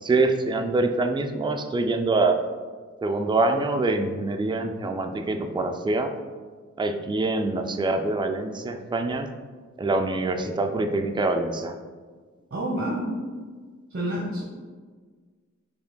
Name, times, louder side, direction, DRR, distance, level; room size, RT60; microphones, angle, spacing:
voice 1, 0.0-2.4 3.0-6.1 6.8-9.3 9.8-11.7, right 2 dB, 15° right, 6 dB, 0.4 m, -25 dB
voice 2, 12.5-13.1 13.9-14.4, right 1 dB, 45° right, -3 dB, 1.0 m, -28 dB
6.0 x 3.4 x 2.2 m, 1.5 s
wide cardioid pair, 45°, 29 cm